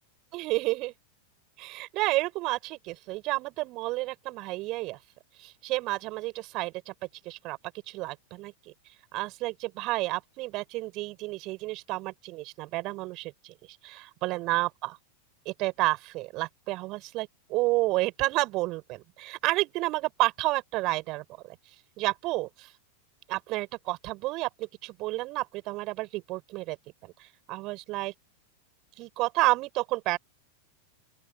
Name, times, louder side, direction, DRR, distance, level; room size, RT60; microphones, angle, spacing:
voice 1, 0.3-0.9 1.6-5.0 5.4-6.9 7.2-7.6 7.9-8.5 9.1-13.5 13.8-14.9 15.5-21.6 22.0-22.7 23.3-26.8 27.0-27.1 27.5-28.1 29.0-30.2, right 20 dB, 40° right, 7.7 m, -30 dB
open air
figure-of-eight pair, 90°, 0 cm